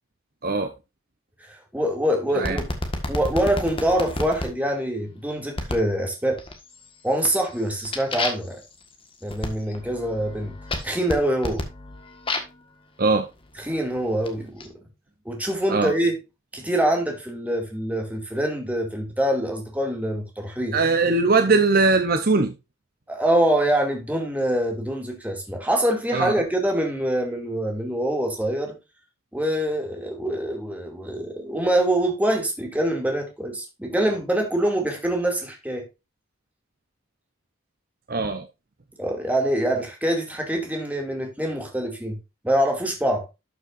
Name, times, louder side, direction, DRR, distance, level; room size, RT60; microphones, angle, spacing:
voice 1, 1.5-2.6 3.1-6.4 7.0-8.6 9.2-10.5 10.8-11.6 13.6-14.6 15.3-16.2 16.5-20.8 23.1-28.7 29.3-35.8 39.0-42.2 42.4-43.2, right 1 dB, 5° right, 2.4 m, -24 dB
sound 1, 2.4-4.5 5.6-5.9 6.4-6.9 7.2-12.6 13.4-14.7, left 2 dB, 25° left, 1.6 m, -31 dB
voice 2, 20.7-22.5 26.1-26.3 38.1-38.5, right 3 dB, 45° right, 0.8 m, -20 dB
12.5 x 6.4 x 2.6 m
head